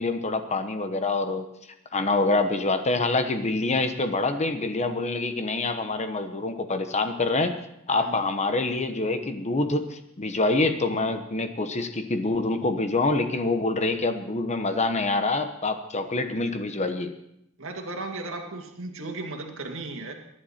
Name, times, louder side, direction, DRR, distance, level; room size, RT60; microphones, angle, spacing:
voice 1, 0.0-1.4 1.9-7.5 7.9-17.1, left 3 dB, 30° left, 8 dB, 1.0 m, -26 dB
voice 2, 17.6-20.1, right 2 dB, 65° right, 3 dB, 2.1 m, -35 dB
23.5 x 10.5 x 4.3 m, 0.78 s
head